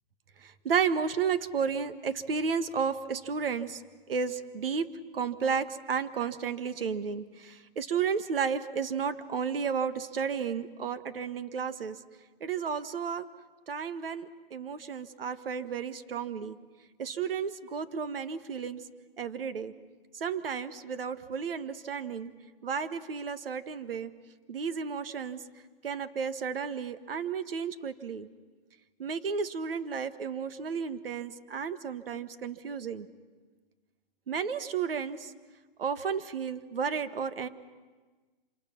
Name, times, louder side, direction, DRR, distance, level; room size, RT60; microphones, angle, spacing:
voice 1, 0.6-3.8 4.1-12.0 12.4-13.3 13.7-16.6 17.0-18.9 19.2-19.7 20.1-22.3 22.6-24.1 24.5-25.4 25.8-28.3 29.0-33.1 34.3-35.3 35.8-37.5, right 6 dB, 70° right, 11 dB, 1.6 m, -32 dB
27.5 x 26.5 x 6.0 m, 1.4 s
hypercardioid pair, 165°, 29 cm